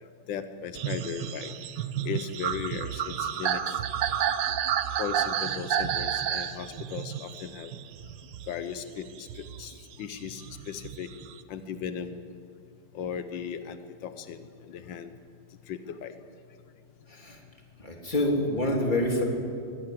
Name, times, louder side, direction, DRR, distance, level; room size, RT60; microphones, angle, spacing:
voice 1, 0.3-1.5 2.0-3.8 5.0-7.7 8.5-9.7 10.0-11.1 11.5-12.2 12.9-15.1 15.7-16.1, left 7 dB, 90° left, 10 dB, 1.6 m, -37 dB
sound 1, 0.8-8.7 9.2-11.4, right 9 dB, 75° right, 1.5 m, -31 dB
voice 2, 17.1-17.4 17.8-19.2, left 1 dB, 25° left, 0 dB, 3.2 m, -27 dB
22.0 x 20.0 x 7.8 m, 2.4 s
omnidirectional pair, 2.0 m